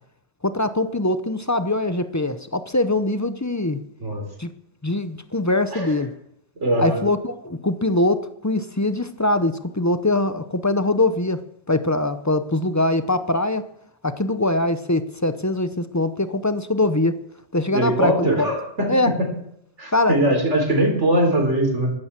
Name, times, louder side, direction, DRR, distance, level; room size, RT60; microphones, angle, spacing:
voice 1, 0.4-3.8 4.4-4.5 4.8-6.1 6.8-11.4 11.7-13.7 14.0-17.2 17.5-18.5 18.9-19.1 19.9-20.2, left 2 dB, 20° left, 11 dB, 0.7 m, -22 dB
voice 2, 6.6-7.0 17.7-19.3 19.8-21.9, right 1 dB, 90° right, 3 dB, 4.2 m, -21 dB
12.5 x 11.5 x 7.5 m, 0.75 s
omnidirectional pair, 1.2 m